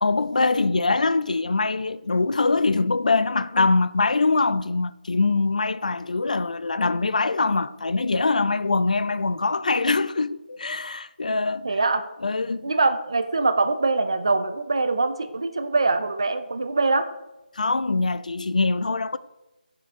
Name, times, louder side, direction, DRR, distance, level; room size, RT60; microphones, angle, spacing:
voice 1, 0.0-11.7 12.2-12.7 17.5-19.2, left 3 dB, 50° left, 0.4 m, -23 dB
voice 2, 11.6-12.0 12.6-17.0, right 3 dB, 35° right, 0.5 m, -23 dB
9.0 x 5.8 x 3.7 m
figure-of-eight pair, 180°, 5 cm